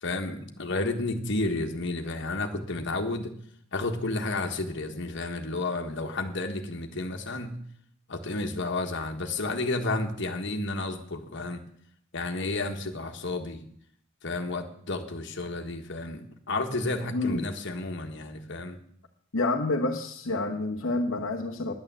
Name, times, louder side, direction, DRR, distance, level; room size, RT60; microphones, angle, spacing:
voice 1, 0.0-3.3 3.7-7.6 8.1-11.6 12.1-13.6 14.2-18.8, left 2 dB, 65° left, 4 dB, 1.6 m, -31 dB
voice 2, 17.1-17.5 19.3-21.7, left 2 dB, 85° left, 1 dB, 1.2 m, -28 dB
10.5 x 9.8 x 7.7 m, 0.64 s
head